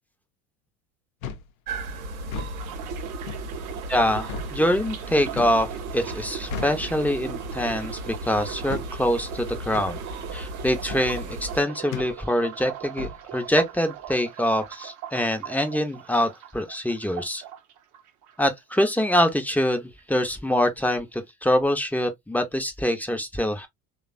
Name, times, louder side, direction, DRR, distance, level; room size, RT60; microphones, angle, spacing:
sound 1, 1.2-1.5 2.2-2.6 3.3-3.5 4.3-4.5 5.4-5.6 6.5-6.8 7.7-7.9 8.7-8.9 9.7-9.9 10.9-11.1 11.9-12.1 13.0-13.2, left 5 dB, 75° left, 0.6 m, -34 dB
sound 2, 1.7-11.6, right 1 dB, 80° right, 0.8 m, -36 dB
sound 3, 2.6-18.5 18.8-19.7 20.0-20.3, right 11 dB, 45° right, 0.7 m, -39 dB
voice 1, 3.9-10.0 10.3-17.4 18.4-23.7, left 1 dB, 5° left, 0.5 m, -25 dB
3.1 x 2.2 x 2.4 m
hypercardioid pair, 70°, 42 cm